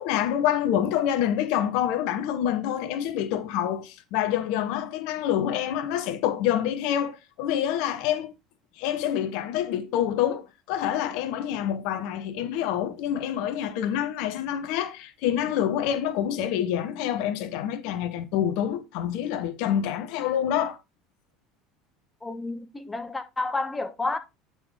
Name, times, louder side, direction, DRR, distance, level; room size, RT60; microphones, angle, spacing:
voice 1, 0.0-8.3 8.8-20.8, left 10 dB, 65° left, 1.0 m, -27 dB
voice 2, 22.2-24.2, left 3 dB, 15° left, 1.3 m, -30 dB
9.0 x 5.3 x 3.6 m
hypercardioid pair, 70°, 0 cm